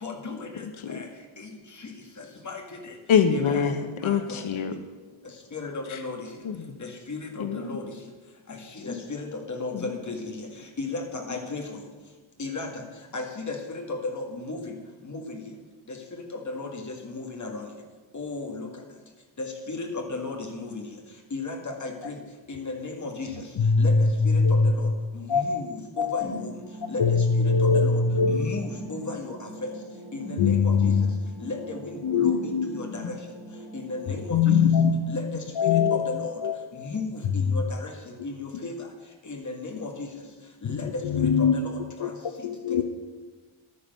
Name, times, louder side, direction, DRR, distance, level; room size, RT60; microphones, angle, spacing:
voice 1, 0.0-1.1 1.4-1.5 1.8-1.9 2.2-3.0 3.3-3.7 4.0-4.4 5.5-6.3 6.8-7.9 8.5-10.5 10.8-11.8 12.4-12.7 13.1-14.7 15.1-15.4 15.9-16.0 16.3-17.7 18.1-18.7 19.4-20.8 21.3-22.2 22.5-23.3 23.8-23.9 24.2-24.9 25.1-26.5 26.9-27.0 27.4-28.0 28.3-29.7 30.1-30.9 31.4-33.1 33.7-34.6 35.1-35.2 35.6-36.4 36.8-37.1 37.3-37.9 38.2-38.8 39.3-40.1 40.6-42.2, left 3 dB, 40° left, 2 dB, 2.0 m, -35 dB
voice 2, 3.1-4.8 5.9-6.0 6.4-6.8 7.4-7.8 9.7-9.9, left 7 dB, 85° left, 8 dB, 1.0 m, -25 dB
voice 3, 23.6-24.0 24.4-24.7 25.3-25.4 26.0-26.2 27.0-28.4 30.4-31.0 32.0-32.7 34.3-35.1 35.6-36.0 36.4-36.5 40.7-41.5 42.0-42.1 42.4-42.8, left 5 dB, 65° left, 7 dB, 0.9 m, -21 dB
sound 1, 26.2-34.2, right 1 dB, 35° right, 2.5 m, -41 dB
11.5 x 9.8 x 6.8 m, 1.3 s
wide cardioid pair, 180°, 47 cm